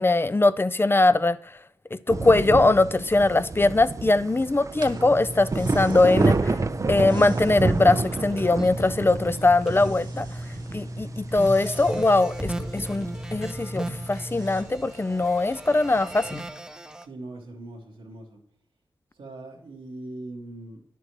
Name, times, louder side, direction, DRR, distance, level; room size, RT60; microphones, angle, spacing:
voice 1, 0.0-1.4 1.9-6.6 6.9-10.3 10.7-16.4, left 2 dB, 25° left, 0.5 m, -21 dB
sound 1, 2.1-16.4, right 3 dB, 35° right, 0.5 m, -30 dB
sound 2, 4.7-14.6, equal, 55° right, 1.5 m, -37 dB
sound 3, 7.9-9.9 10.2-10.6 10.9-17.1, right 1 dB, 5° right, 0.8 m, -37 dB
voice 2, 17.0-18.4 19.2-20.8, right 2 dB, 90° right, 2.1 m, -40 dB
10.5 x 6.7 x 3.1 m
cardioid pair, 45°, 9 cm